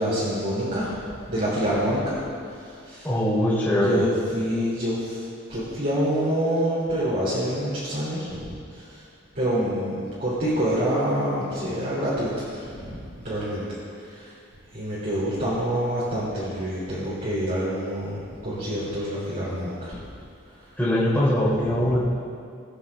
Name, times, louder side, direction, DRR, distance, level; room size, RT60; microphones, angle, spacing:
voice 1, 0.0-2.2 2.5-3.1 3.8-8.5 8.8-9.0 9.3-13.6 14.0-14.3 14.7-20.0 21.9-22.0, equal, 45° right, -10 dB, 3.2 m, -27 dB
voice 2, 3.0-4.0 20.8-22.0, left 1 dB, 10° left, -9 dB, 3.3 m, -21 dB
21.0 x 9.8 x 3.6 m, 2.4 s
head